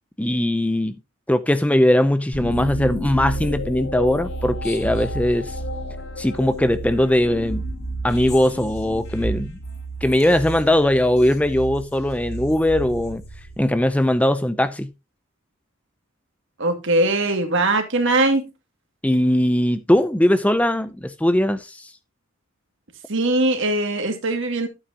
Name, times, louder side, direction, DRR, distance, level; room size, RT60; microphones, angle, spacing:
voice 1, 0.2-0.9 1.3-5.5 6.2-7.6 8.0-9.6 10.0-13.2 13.6-14.9 19.0-21.9, left 1 dB, 5° left, 0.5 m, -20 dB
sound 1, 2.3-13.9, right 1 dB, 65° left, 5.0 m, -31 dB
voice 2, 16.6-18.5 23.1-24.7, right 2 dB, 60° right, 2.3 m, -21 dB
11.5 x 8.7 x 2.8 m
head